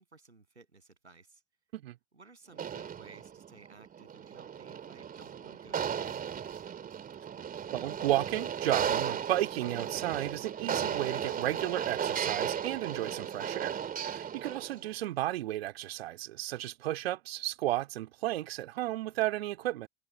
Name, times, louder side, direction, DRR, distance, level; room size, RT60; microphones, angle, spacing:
voice 1, 0.0-1.4 2.1-6.2 14.6-14.9, right 3 dB, 85° right, 7.4 m, -57 dB
sound 1, 2.5-14.9, right 8 dB, 25° right, 2.7 m, -35 dB
voice 2, 7.7-19.9, right 14 dB, 65° right, 2.4 m, -33 dB
figure-of-eight pair, 85°, 32 cm